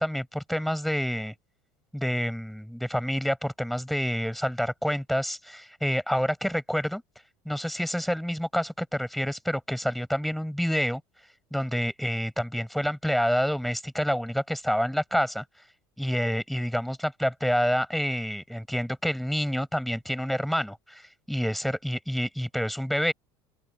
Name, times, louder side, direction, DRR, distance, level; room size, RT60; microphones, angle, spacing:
voice 1, 0.0-1.3 1.9-7.0 7.4-11.0 11.5-15.4 16.0-23.1, equal, ahead, 6.5 m, -28 dB
open air
supercardioid pair, 105°, 13 cm